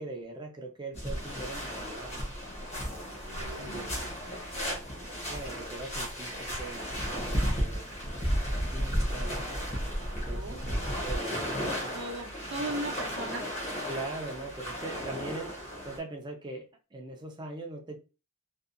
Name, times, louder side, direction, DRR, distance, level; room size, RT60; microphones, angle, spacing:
voice 1, 0.0-2.3 3.6-4.0 4.7-4.8 5.3-7.9 8.4-9.6 10.2-11.8 13.9-18.0, right 2 dB, 20° right, 0.5 m, -42 dB
sound 1, 0.9-16.0, equal, 30° left, 0.9 m, -34 dB
voice 2, 3.3-5.6 10.3-10.7 11.9-13.5 14.8-15.0, right 1 dB, 55° right, 0.7 m, -40 dB
2.7 x 2.3 x 2.4 m
head